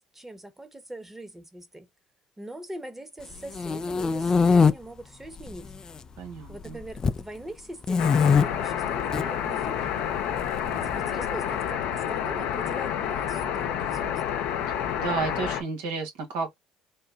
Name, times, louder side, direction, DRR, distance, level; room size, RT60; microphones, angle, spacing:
voice 1, 0.0-1.9 2.4-5.7 6.5-10.0 10.7-14.2, right 1 dB, 15° right, 1.1 m, -42 dB
sound 1, 3.3-4.7 5.4-6.0 6.3-7.2 7.8-8.4 9.0-9.2 10.4-11.3, left 5 dB, 30° left, 0.4 m, -22 dB
voice 2, 6.2-6.8 15.0-16.6, right 5 dB, 75° right, 1.3 m, -31 dB
sound 2, 8.0-15.6, left 9 dB, 70° left, 0.7 m, -29 dB
3.8 x 2.2 x 2.6 m
hypercardioid pair, 70°, 2 cm